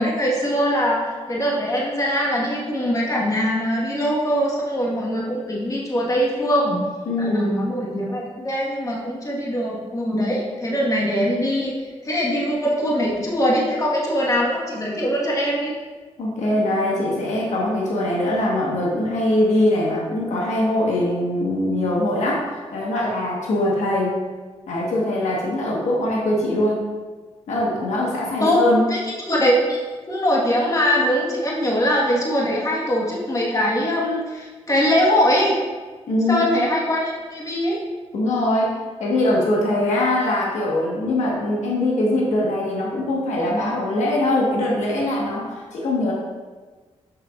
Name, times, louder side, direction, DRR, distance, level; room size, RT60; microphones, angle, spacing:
voice 1, 0.0-6.9 7.2-11.7 12.0-15.7 28.4-28.6 28.9-29.8 30.1-35.6 36.3-37.8, equal, 30° left, -3 dB, 1.3 m, -22 dB
voice 2, 7.1-7.5 10.1-10.2 16.2-24.1 24.7-26.8 27.5-28.8 36.1-36.5 38.1-46.1, left 1 dB, 85° left, -4 dB, 1.2 m, -22 dB
6.6 x 6.0 x 2.4 m, 1.4 s
cardioid pair, 65°, 12 cm